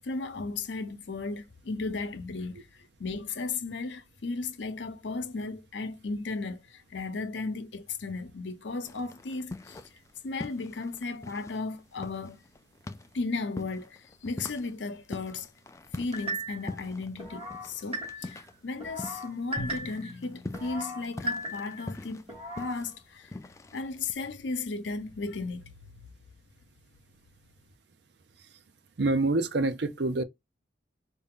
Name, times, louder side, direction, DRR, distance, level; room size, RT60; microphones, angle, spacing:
voice 1, 0.0-2.6 3.0-9.8 10.2-12.4 13.1-15.5 15.9-22.2 22.6-23.3 23.7-25.6, left 3 dB, 75° left, 0.7 m, -35 dB
sound 1, 8.8-10.1 10.4-19.4 19.7-24.1, left 2 dB, 15° left, 0.3 m, -43 dB
sound 2, 16.1-16.7 17.2-18.4 18.8-20.1 20.5-21.9 22.3-22.8, right 1 dB, 30° right, 1.9 m, -37 dB
Drum, 19.6-22.5, left 1 dB, ahead, 1.7 m, -44 dB
voice 2, 29.0-30.2, right 2 dB, 60° right, 0.6 m, -26 dB
4.7 x 2.7 x 3.7 m
head